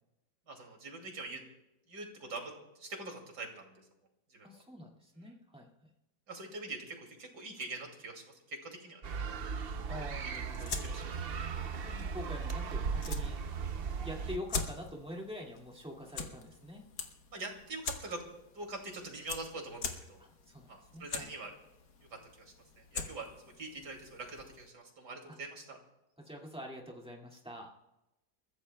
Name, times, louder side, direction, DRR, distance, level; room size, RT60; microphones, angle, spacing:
voice 1, 0.5-1.4 1.9-3.7 4.3-4.6 6.3-9.0 10.8-11.0 17.3-18.2 18.5-20.2 20.7-21.5 22.1-25.8, right 3 dB, 85° right, 2 dB, 3.2 m, -44 dB
voice 2, 4.4-5.7 9.9-10.8 11.8-13.4 14.0-16.8 20.2-21.3 25.3-25.4 26.2-27.7, left 1 dB, 5° right, -2 dB, 2.0 m, -45 dB
sound 1, 9.0-14.4, right 5 dB, 50° right, 0.7 m, -37 dB
sound 2, 10.3-24.7, left 5 dB, 70° left, 1.8 m, -44 dB
29.0 x 14.5 x 2.3 m, 0.95 s
omnidirectional pair, 1.7 m